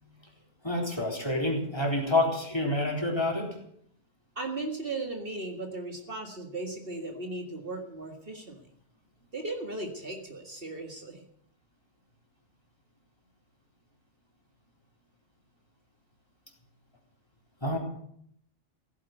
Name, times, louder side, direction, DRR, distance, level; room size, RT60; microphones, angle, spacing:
voice 1, 0.6-3.5 17.6-17.8, left 1 dB, 20° left, 0 dB, 3.8 m, -28 dB
voice 2, 4.4-8.6 9.3-11.2, right 2 dB, 50° right, 3 dB, 2.1 m, -37 dB
16.0 x 9.6 x 7.9 m, 0.69 s
omnidirectional pair, 1.3 m